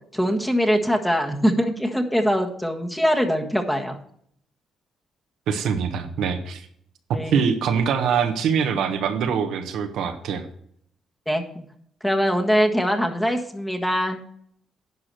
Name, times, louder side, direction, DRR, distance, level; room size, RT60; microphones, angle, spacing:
voice 1, 0.1-4.0 7.1-7.4 11.3-11.6 12.0-14.2, equal, 5° left, 3 dB, 1.5 m, -22 dB
voice 2, 5.5-6.7 7.1-10.4, right 7 dB, 80° right, 6 dB, 1.2 m, -24 dB
11.0 x 4.9 x 7.6 m, 0.66 s
cardioid pair, 90°, 0 cm